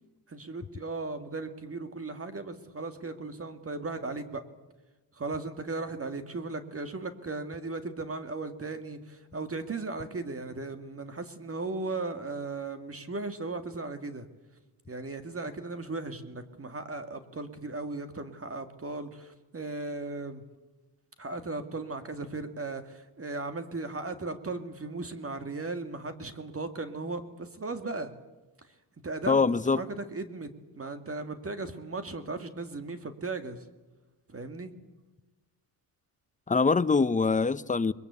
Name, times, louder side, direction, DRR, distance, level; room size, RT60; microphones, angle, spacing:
voice 1, 0.3-4.4 5.1-14.3 14.9-20.4 21.2-28.1 28.6-28.8 29.0-33.7 34.3-34.7, right 3 dB, 30° right, 2.1 m, -37 dB
voice 2, 29.3-29.8 36.5-37.9, left 4 dB, 15° left, 0.8 m, -24 dB
22.0 x 21.0 x 8.3 m
cardioid pair, 80°, 45 cm